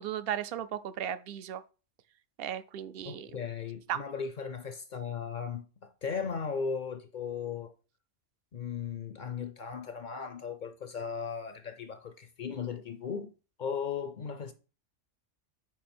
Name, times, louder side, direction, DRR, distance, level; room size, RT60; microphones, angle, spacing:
voice 1, 0.0-1.6 2.4-3.3 3.9-4.0, right 10 dB, 60° right, 0.7 m, -35 dB
voice 2, 3.1-7.7 8.5-13.3 13.6-14.5, left 6 dB, 55° left, 0.5 m, -37 dB
5.9 x 4.6 x 4.3 m
omnidirectional pair, 1.2 m